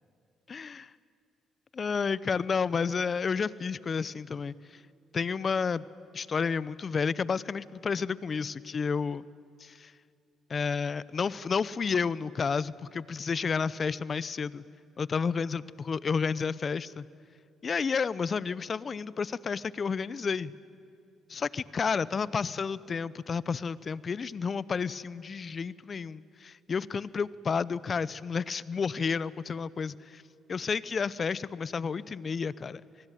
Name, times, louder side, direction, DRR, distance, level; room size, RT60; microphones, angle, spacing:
voice 1, 0.5-0.9 1.7-4.5 5.1-5.9 6.1-9.2 9.6-9.9 10.5-14.6 15.0-17.1 17.6-20.5 21.3-30.2 30.5-32.8, left 5 dB, 45° left, 20 dB, 0.7 m, -31 dB
26.5 x 19.5 x 9.2 m, 2.5 s
supercardioid pair, 70°, 0 cm